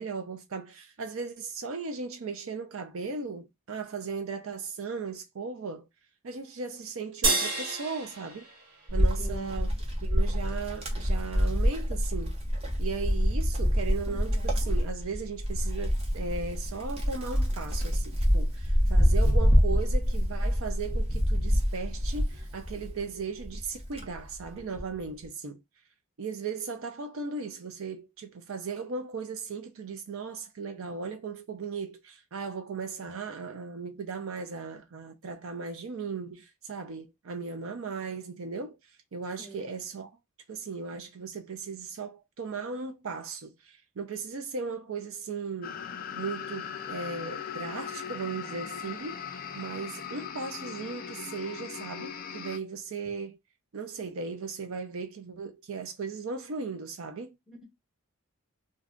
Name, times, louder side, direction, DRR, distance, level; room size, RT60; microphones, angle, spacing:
voice 1, 0.0-5.9 6.2-8.5 8.9-9.7 10.0-12.3 12.8-25.6 26.2-40.1 40.5-45.8 46.1-49.2 49.5-53.4 53.7-57.4, right 4 dB, 65° right, 0.5 m, -37 dB
sound 1, 7.2-9.8, right 3 dB, 80° right, 1.2 m, -31 dB
Wind, 8.9-23.0 23.4-24.9, equal, 25° right, 0.8 m, -26 dB
voice 2, 9.2-9.8 39.4-39.7 57.5-57.6, right 4 dB, ahead, 1.1 m, -45 dB
sound 2, 45.6-52.6, left 7 dB, 40° left, 0.4 m, -39 dB
2.5 x 2.3 x 3.6 m
head